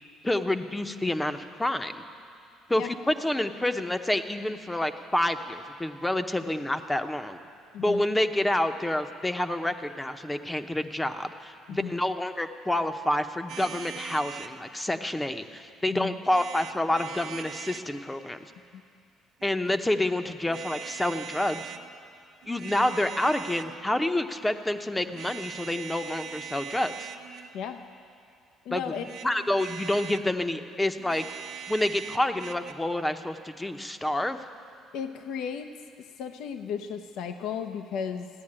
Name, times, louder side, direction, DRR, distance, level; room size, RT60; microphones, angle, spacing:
voice 1, 0.2-2.0 2.7-7.4 7.8-18.4 19.4-21.7 22.5-27.1 28.7-31.2 31.7-34.4, left 1 dB, 10° left, 8 dB, 0.8 m, -28 dB
voice 2, 11.7-12.0 15.9-16.2 18.7-18.8 27.5-27.8 28.6-29.0 34.9-35.7 36.2-38.3, left 7 dB, 75° left, 7 dB, 0.7 m, -34 dB
sound 1, 13.5-14.6 16.2-17.9 19.4-19.8 20.5-21.8 22.4-23.8 25.1-27.6 28.9-30.3 31.0-32.7, right 8 dB, 70° right, 0.9 m, -41 dB
15.5 x 10.5 x 8.8 m, 2.4 s
cardioid pair, 110°, 0 cm